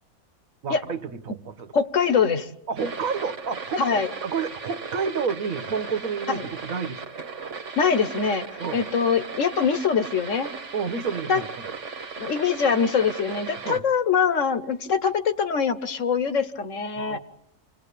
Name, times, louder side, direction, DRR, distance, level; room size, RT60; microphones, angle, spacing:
voice 1, 0.6-1.7 2.7-7.0 8.6-8.9 10.7-11.7 13.6-13.8 16.9-17.2, right 5 dB, 80° right, 9 dB, 1.6 m, -30 dB
voice 2, 1.7-2.5 3.8-4.1 6.3-6.4 7.8-8.4 8.7-10.5 11.3-11.4 12.2-17.2, left 6 dB, 65° left, 10 dB, 1.5 m, -23 dB
sound 1, 2.8-13.8, right 5 dB, 60° right, 1.6 m, -37 dB
27.0 x 19.5 x 8.4 m, 0.84 s
omnidirectional pair, 1.4 m